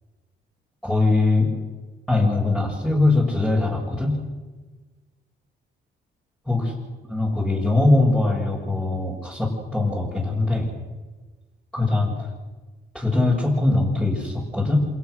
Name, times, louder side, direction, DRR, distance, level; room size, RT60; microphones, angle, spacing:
voice 1, 0.8-1.5 2.1-4.2 6.5-6.6 7.1-10.7 11.7-12.3 12.9-14.8, left 2 dB, 5° left, -5 dB, 6.9 m, -21 dB
27.0 x 18.0 x 6.6 m, 1.3 s
cardioid pair, 90°, 20 cm